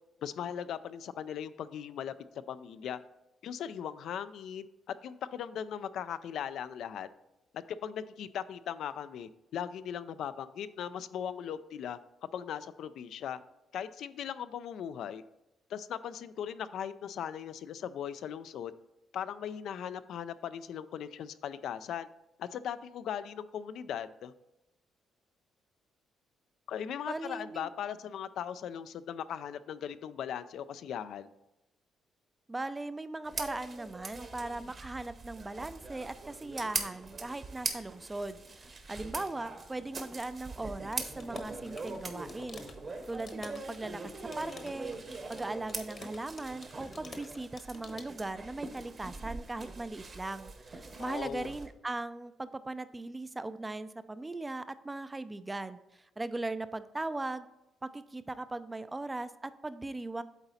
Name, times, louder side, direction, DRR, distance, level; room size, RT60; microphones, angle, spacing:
voice 1, 0.2-2.1 2.5-3.0 3.4-7.1 7.5-12.0 12.3-13.4 13.7-15.2 15.7-18.7 19.1-22.1 22.4-24.3 26.7-31.3 51.0-51.5, left 9 dB, 75° left, 13 dB, 0.3 m, -39 dB
voice 2, 27.1-27.7 32.5-42.7 43.1-45.0 45.3-57.5 57.8-60.2, right 2 dB, 15° right, 13 dB, 0.4 m, -39 dB
sound 1, 33.2-51.7, right 3 dB, 40° right, 1.0 m, -42 dB
sound 2, 40.9-48.1, left 3 dB, 45° left, 1.0 m, -51 dB
8.1 x 3.9 x 4.1 m, 0.91 s
cardioid pair, 90°, 0 cm